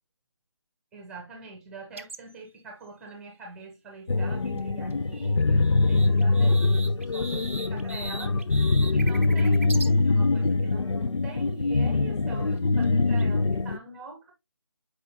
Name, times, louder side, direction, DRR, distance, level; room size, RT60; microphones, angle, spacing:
voice 1, 0.9-8.4 8.9-9.8 10.0-14.3, right 3 dB, 5° right, 0.8 m, -44 dB
sound 1, 2.0-2.3 4.6-4.7 4.9-9.9 12.6-13.2, right 3 dB, 25° right, 0.5 m, -40 dB
sound 2, 4.1-13.8, left 3 dB, 75° left, 0.4 m, -23 dB
7.7 x 4.8 x 2.5 m
figure-of-eight pair, 155°, 16 cm